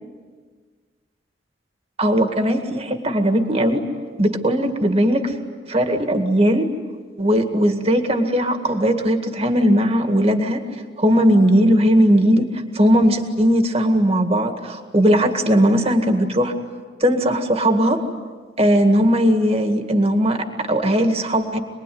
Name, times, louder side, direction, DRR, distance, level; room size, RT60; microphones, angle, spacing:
voice 1, 2.0-3.8 4.2-5.4 5.7-6.7 7.2-10.6 11.0-12.5 12.7-16.5 17.0-18.0 18.6-21.6, equal, 35° right, 5 dB, 2.0 m, -18 dB
27.5 x 21.0 x 9.5 m, 1.5 s
head